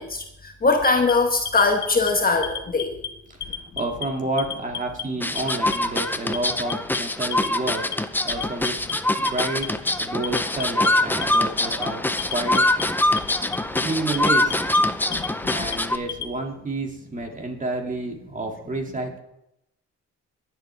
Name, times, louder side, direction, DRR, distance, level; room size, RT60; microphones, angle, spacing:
voice 1, 0.0-2.9 13.4-13.9 15.1-15.6, left 3 dB, 30° left, 4 dB, 1.3 m, -22 dB
Alarm, 0.8-2.1 2.4-3.1 3.4-4.1 4.4-5.0 5.4-6.0 6.3-7.0 7.3-8.0 8.3-8.9 9.3-9.9 10.2-10.9 11.2-11.9 12.2-12.8 13.2-13.8 14.1-14.8 15.1-16.3, left 8 dB, 65° left, 1.2 m, -32 dB
voice 2, 3.4-7.9 8.2-12.0 12.3-12.8 13.8-14.6 15.5-19.2, right 2 dB, 25° right, 2 dB, 2.6 m, -30 dB
sound 1, 5.2-16.0, left 1 dB, 5° left, 0.7 m, -24 dB
22.5 x 7.8 x 3.5 m, 0.84 s
cardioid pair, 90°, 30 cm